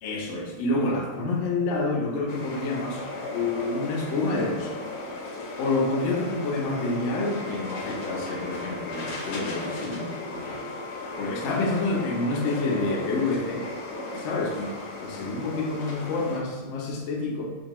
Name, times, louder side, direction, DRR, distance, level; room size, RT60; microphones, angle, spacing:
voice 1, 0.0-3.1 3.3-4.7 5.6-10.7 11.2-13.7 14.2-14.7 15.0-17.5, left 2 dB, 70° left, -1 dB, 0.7 m, -28 dB
sound 1, 2.3-16.4, left 2 dB, 85° left, 1.2 m, -36 dB
2.7 x 2.3 x 2.9 m, 1.3 s
omnidirectional pair, 1.7 m